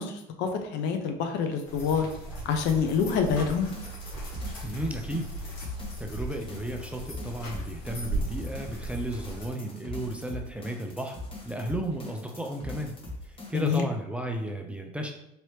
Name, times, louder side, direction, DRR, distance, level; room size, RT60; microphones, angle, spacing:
voice 1, 0.0-2.1 2.4-3.7 13.5-13.9, left 6 dB, 65° left, 5 dB, 0.6 m, -27 dB
sound 1, 1.6-9.5, right 1 dB, 90° left, 1.4 m, -37 dB
sound 2, 3.5-13.8, left 2 dB, 25° left, 1.0 m, -42 dB
voice 2, 4.6-5.3 6.0-11.2 11.4-12.9 13.2-15.1, right 1 dB, 5° right, 2 dB, 0.5 m, -33 dB
3.0 x 2.8 x 3.1 m, 0.81 s
supercardioid pair, 90°, 20 cm